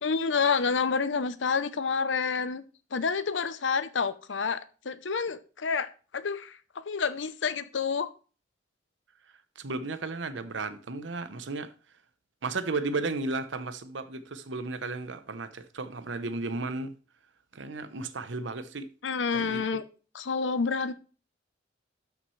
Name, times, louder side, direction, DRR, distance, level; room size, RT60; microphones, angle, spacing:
voice 1, 0.0-2.6 2.9-8.1 19.0-19.8 20.1-20.9, left 5 dB, 75° left, 0.7 m, -29 dB
voice 2, 9.6-11.7 12.4-16.9 17.5-18.9 19.3-19.8, right 3 dB, 75° right, 0.8 m, -34 dB
12.5 x 5.9 x 3.2 m
head